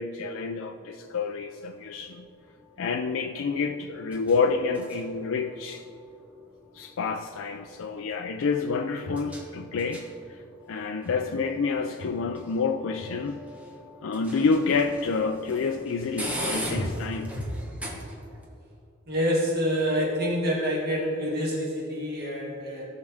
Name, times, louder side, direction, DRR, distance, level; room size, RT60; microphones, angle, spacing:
voice 1, 0.0-2.3 2.8-5.8 6.7-10.4 10.7-13.5 14.0-17.4, left 4 dB, 80° left, 5 dB, 0.4 m, -28 dB
sound 1, 1.0-18.5, equal, 5° right, 1.1 m, -42 dB
voice 2, 19.1-22.9, equal, 50° right, -4 dB, 2.2 m, -27 dB
17.5 x 6.5 x 3.5 m, 2.7 s
head